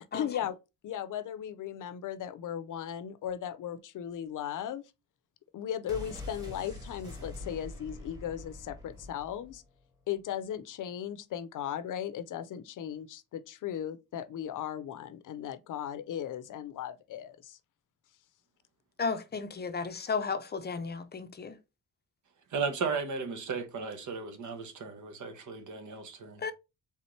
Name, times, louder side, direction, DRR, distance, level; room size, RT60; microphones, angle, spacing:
voice 1, 0.1-0.6 0.8-4.8 5.5-9.6 10.1-17.6, left 10 dB, 75° left, 0.6 m, -37 dB
sound 1, 5.9-9.7 9.9-10.0, left 1 dB, 10° right, 1.6 m, -44 dB
voice 2, 19.0-21.5 26.4-26.5, left 5 dB, 30° left, 0.5 m, -34 dB
voice 3, 22.5-26.4, right 5 dB, 70° right, 1.1 m, -35 dB
4.3 x 3.6 x 3.1 m
wide cardioid pair, 135°, 31 cm